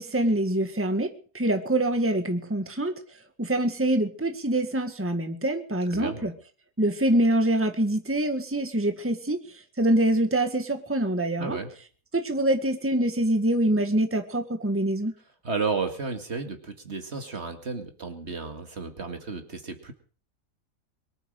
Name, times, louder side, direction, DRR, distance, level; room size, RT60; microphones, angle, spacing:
voice 1, 0.0-3.0 3.4-6.3 6.8-9.4 9.8-11.6 12.1-15.1, right 1 dB, 10° right, 7 dB, 1.7 m, -25 dB
voice 2, 5.9-6.2 11.4-11.7 15.4-19.9, right 4 dB, 50° right, 6 dB, 2.3 m, -32 dB
23.0 x 9.4 x 6.5 m, 0.41 s
omnidirectional pair, 1.5 m